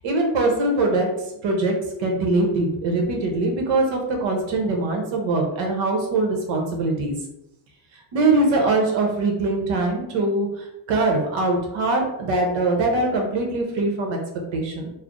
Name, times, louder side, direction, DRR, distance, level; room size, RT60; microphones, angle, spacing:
voice 1, 0.0-1.1 1.4-1.7 2.0-7.2 8.1-14.2 14.5-14.9, right 2 dB, 70° right, 1 dB, 1.1 m, -22 dB
3.3 x 2.1 x 3.8 m, 0.85 s
cardioid pair, 115°, 47 cm